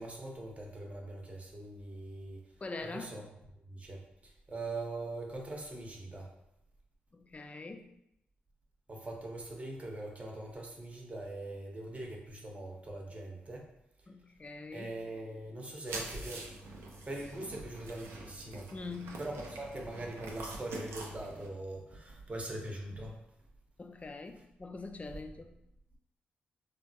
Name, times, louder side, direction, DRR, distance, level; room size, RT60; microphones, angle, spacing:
voice 1, 0.0-2.4 2.9-3.2 3.7-6.3 8.9-13.7 14.7-16.5 17.1-18.7 19.2-23.1, right 2 dB, 30° right, 0 dB, 0.8 m, -42 dB
voice 2, 2.6-3.2 7.1-7.9 14.1-14.9 18.7-19.1 23.8-25.6, left 3 dB, 30° left, 6 dB, 0.4 m, -43 dB
sound 1, 15.9-21.5, right 2 dB, 80° right, 0.5 m, -45 dB
3.3 x 2.2 x 2.7 m, 0.81 s
supercardioid pair, 50°, 4 cm